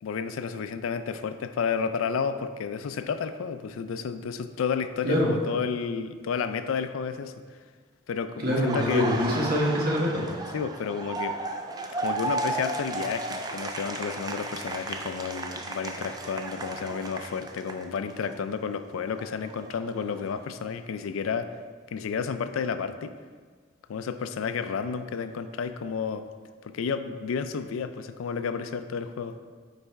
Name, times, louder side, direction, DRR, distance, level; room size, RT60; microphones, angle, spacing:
voice 1, 0.0-7.3 8.1-9.1 10.5-11.4 12.0-21.5 21.9-23.1 23.9-26.2 26.6-29.4, left 6 dB, 85° left, 10 dB, 0.4 m, -31 dB
voice 2, 8.4-10.3, left 1 dB, 45° right, -3 dB, 1.2 m, -24 dB
Laughter, 8.5-18.3 18.7-20.7, right 2 dB, 20° right, 0.3 m, -34 dB
5.5 x 4.1 x 4.6 m, 1.5 s
head